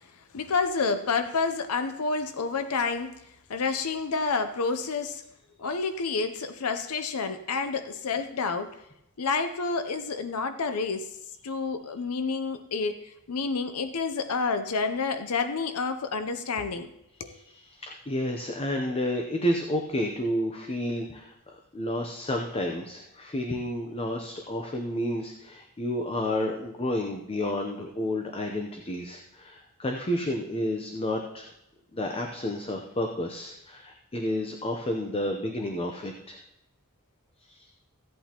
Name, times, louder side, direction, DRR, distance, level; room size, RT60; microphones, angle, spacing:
voice 1, 0.3-3.2 3.5-5.2 5.6-8.8 9.2-11.1 11.4-16.9 17.2-17.4, left 4 dB, 75° left, 9 dB, 0.6 m, -29 dB
voice 2, 17.3-31.5 31.9-36.4 37.5-37.7, left 1 dB, 25° left, 3 dB, 0.7 m, -31 dB
15.5 x 8.4 x 2.9 m, 0.81 s
head